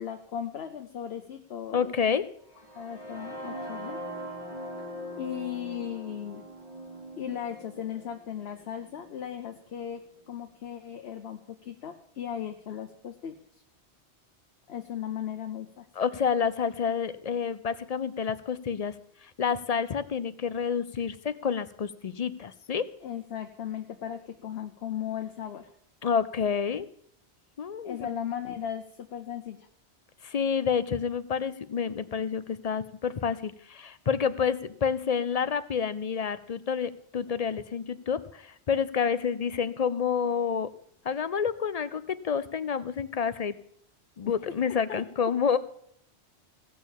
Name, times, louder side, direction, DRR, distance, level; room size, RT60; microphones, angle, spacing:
voice 1, 0.0-1.9 2.7-4.0 5.2-6.4 7.2-10.0 10.3-13.3 14.7-15.9 23.0-25.7 27.8-29.7 44.2-44.3 44.9-45.0, left 9 dB, 65° left, 6 dB, 1.0 m, -37 dB
voice 2, 1.7-2.3 16.0-18.9 19.2-22.8 26.0-26.9 27.6-28.1 30.2-40.7 41.0-43.5 44.2-45.6, left 6 dB, 45° left, 14 dB, 0.5 m, -29 dB
sound 1, 2.5-10.4, equal, 35° right, 2.7 m, -42 dB
16.5 x 6.5 x 7.2 m, 0.66 s
omnidirectional pair, 1.2 m